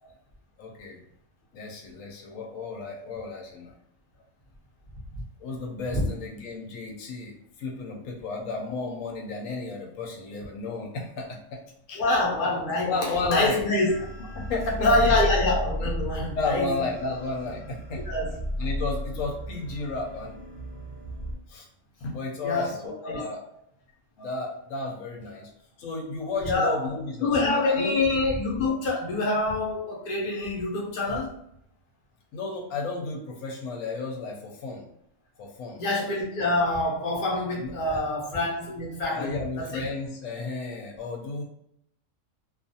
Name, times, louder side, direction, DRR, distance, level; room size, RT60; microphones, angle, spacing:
voice 1, 0.6-1.0 1.5-3.7 5.4-11.6 11.9-12.2 12.9-13.6 14.3-14.9 16.4-18.0 18.6-20.4 21.5-21.7 22.0-23.4 24.2-25.5 25.8-28.0 32.3-34.9 35.4-35.8 37.6-38.0 39.1-41.4, left 3 dB, 85° left, 0 dB, 1.0 m, -33 dB
voice 2, 12.0-14.0 14.8-16.7 18.1-18.4 22.4-22.7 23.0-23.2 24.2-24.3 26.4-26.7 27.2-31.3 35.8-39.8, left 2 dB, 45° left, -3 dB, 0.8 m, -26 dB
sound 1, 13.9-21.3, equal, 50° right, 0.8 m, -33 dB
2.4 x 2.3 x 2.7 m, 0.72 s
omnidirectional pair, 1.3 m